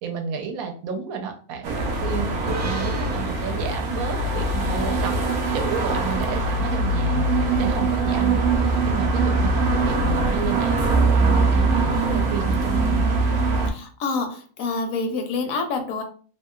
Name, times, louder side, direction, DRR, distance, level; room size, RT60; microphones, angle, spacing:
voice 1, 0.0-13.1, right 6 dB, 85° right, 4 dB, 1.1 m, -32 dB
sound 1, 1.6-13.7, right 3 dB, 65° right, 0.8 m, -22 dB
sound 2, 2.5-5.9, right 3 dB, 40° right, 0.5 m, -38 dB
voice 2, 13.7-16.0, left 4 dB, 75° left, 5 dB, 1.0 m, -27 dB
2.8 x 2.7 x 2.2 m, 0.41 s
omnidirectional pair, 1.5 m